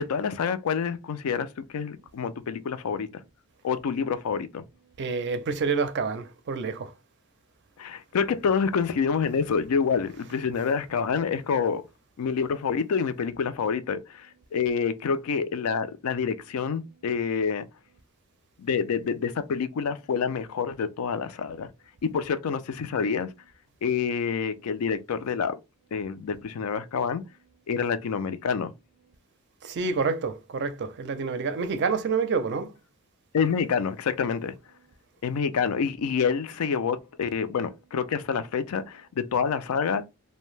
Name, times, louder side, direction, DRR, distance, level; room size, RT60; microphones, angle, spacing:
voice 1, 0.0-1.5 1.7-3.1 3.6-4.6 7.8-11.8 12.2-17.6 18.6-21.7 22.0-23.3 23.8-25.6 25.9-27.2 27.7-28.7 33.3-34.5 35.2-40.1, left 6 dB, 75° left, 0.4 m, -27 dB
voice 2, 5.0-6.9 29.6-32.7, right 5 dB, 50° right, 0.4 m, -28 dB
2.6 x 2.1 x 3.1 m
head